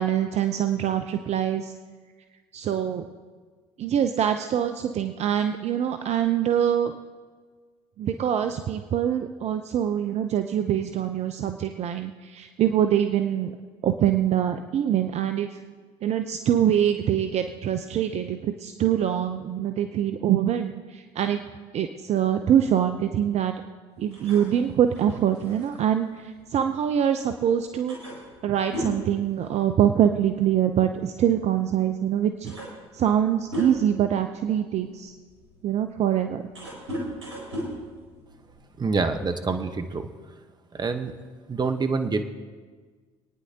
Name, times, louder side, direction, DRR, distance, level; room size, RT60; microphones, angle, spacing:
voice 1, 0.0-1.7 2.5-3.1 3.8-6.9 8.0-13.5 13.8-15.6 16.0-21.4 21.7-23.5 24.0-28.0 28.4-32.5 32.9-35.1 35.6-36.4, right 9 dB, 50° right, 8 dB, 0.7 m, -24 dB
sound 1, 24.1-27.1 27.5-27.6 27.9-30.1 30.3-30.6 31.6-31.7 32.1-34.1 34.7-38.8, equal, 90° right, 3.9 m, -36 dB
voice 2, 38.8-40.1 40.7-41.1 41.5-42.2, right 4 dB, 30° right, 8 dB, 1.1 m, -26 dB
25.5 x 9.8 x 2.9 m, 1.5 s
hypercardioid pair, 60°, 15 cm